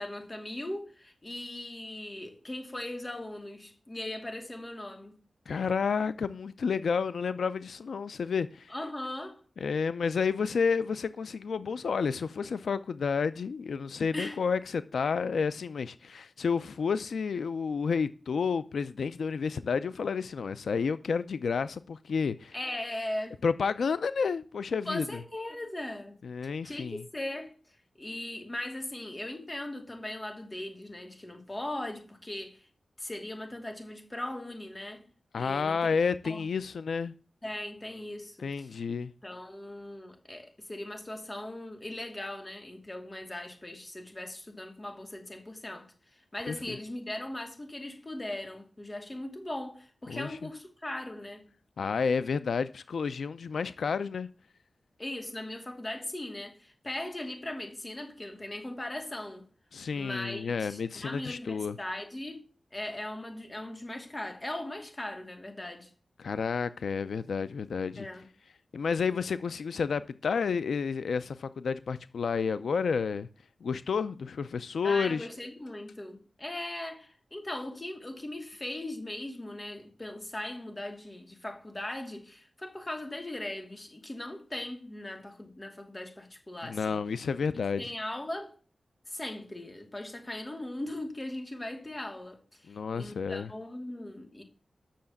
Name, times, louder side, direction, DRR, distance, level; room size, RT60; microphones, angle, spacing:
voice 1, 0.0-5.1 8.7-9.4 14.1-14.4 22.5-23.4 24.9-26.2 26.6-32.7 33.0-35.1 35.4-35.9 36.2-36.5 37.4-38.8 39.2-51.5 55.0-59.5 59.9-65.9 68.0-68.3 74.8-87.1 87.5-88.5 89.1-94.4, left 1 dB, 20° left, 2.6 m, -39 dB
voice 2, 5.5-8.7 9.6-22.5 23.4-25.2 26.2-27.0 35.3-37.1 38.4-39.1 46.5-46.6 50.1-50.4 51.8-54.3 59.7-61.8 66.2-68.1 68.7-73.3 73.6-75.3 86.6-87.8 92.7-93.5, left 5 dB, 85° left, 0.5 m, -30 dB
10.0 x 6.6 x 7.1 m
wide cardioid pair, 115°, 0 cm